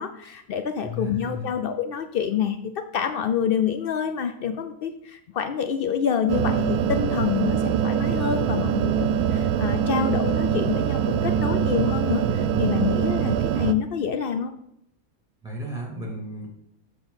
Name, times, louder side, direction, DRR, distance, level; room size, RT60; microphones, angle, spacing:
voice 1, 0.0-14.5, left 7 dB, 85° left, 8 dB, 0.5 m, -27 dB
voice 2, 0.8-1.5 15.4-16.5, equal, ahead, -3 dB, 2.5 m, -34 dB
sound 1, 6.3-13.7, right 8 dB, 85° right, 1.1 m, -23 dB
6.9 x 6.9 x 4.0 m, 0.76 s
omnidirectional pair, 1.6 m